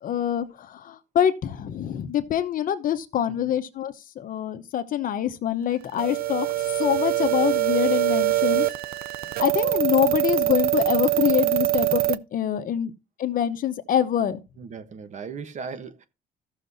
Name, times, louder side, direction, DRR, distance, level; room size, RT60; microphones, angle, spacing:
voice 1, 0.0-8.7 9.4-12.9 13.2-14.4, left 10 dB, 55° left, 0.9 m, -25 dB
sound 1, 6.0-12.2, right 16 dB, 60° right, 0.5 m, -24 dB
voice 2, 14.6-16.1, right 5 dB, 45° right, 1.1 m, -37 dB
15.0 x 6.5 x 2.7 m
cardioid pair, 110°, 17 cm